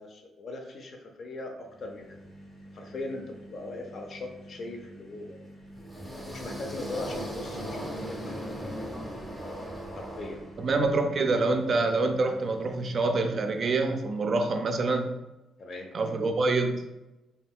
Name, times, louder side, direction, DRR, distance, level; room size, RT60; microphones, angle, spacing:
voice 1, 0.0-2.2 2.7-5.5 6.3-8.7 9.9-10.4 15.6-15.9, left 2 dB, 55° left, 3 dB, 0.5 m, -40 dB
sound 1, 1.5-14.1, right 1 dB, 85° left, 1.0 m, -49 dB
sound 2, 5.7-10.9, equal, 5° left, 0.6 m, -38 dB
voice 2, 10.6-15.2 15.9-16.8, right 3 dB, 45° right, 5 dB, 0.3 m, -26 dB
2.3 x 2.2 x 3.5 m, 1.0 s
cardioid pair, 90°, 0 cm